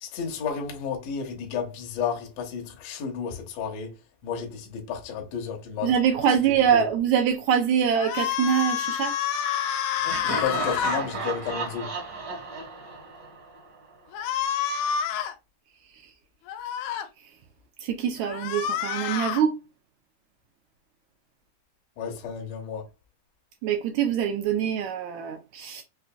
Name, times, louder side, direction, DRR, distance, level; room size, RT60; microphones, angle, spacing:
voice 1, 0.0-3.9 4.2-5.9 6.7-6.9 10.2-11.9 22.0-22.8, left 6 dB, 70° left, 1.7 m, -32 dB
voice 2, 5.8-9.1 18.0-19.5 23.6-25.8, right 8 dB, 85° right, 1.7 m, -24 dB
sound 1, 8.0-11.0 14.1-15.3 16.5-17.1 18.2-19.4, left 8 dB, 90° left, 1.6 m, -28 dB
Laughter, 10.0-13.9, right 4 dB, 50° right, 1.1 m, -34 dB
5.6 x 2.5 x 2.2 m
omnidirectional pair, 3.9 m